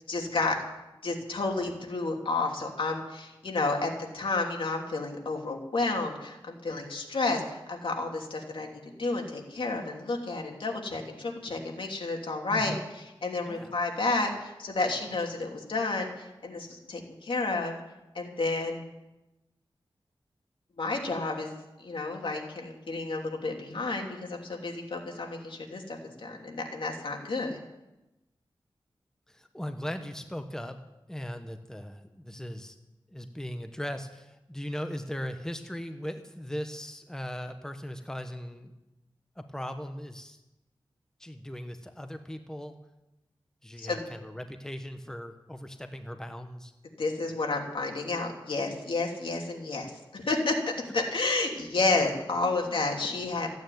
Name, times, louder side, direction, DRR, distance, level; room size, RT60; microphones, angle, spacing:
voice 1, 0.1-0.6 1.0-17.7 18.1-18.9 20.8-21.5 21.8-27.6 43.8-44.0 47.0-53.5, left 3 dB, 70° left, 1 dB, 3.0 m, -31 dB
voice 2, 12.5-12.9 13.4-13.8 29.3-30.8 31.1-32.7 33.1-38.7 39.4-40.4 41.2-42.8 43.6-46.7 50.9-51.0 52.6-52.8, equal, 5° left, 7 dB, 1.2 m, -38 dB
15.0 x 9.3 x 9.3 m, 0.98 s
wide cardioid pair, 65°, 9 cm